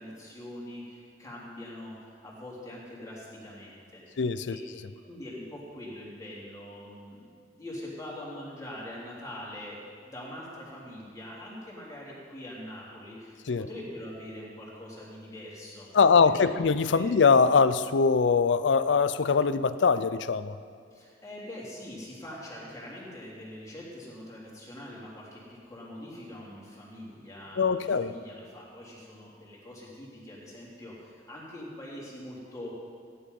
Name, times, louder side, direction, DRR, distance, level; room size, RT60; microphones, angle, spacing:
voice 1, 0.0-4.2 4.5-4.6 5.0-15.9 16.4-16.5 16.9-17.1 20.9-32.8, left 1 dB, 20° left, -5 dB, 3.2 m, -43 dB
voice 2, 4.2-4.6 13.5-13.7 15.9-20.6 27.6-28.1, left 5 dB, 80° left, 13 dB, 0.5 m, -22 dB
15.5 x 10.0 x 5.4 m, 2.2 s
head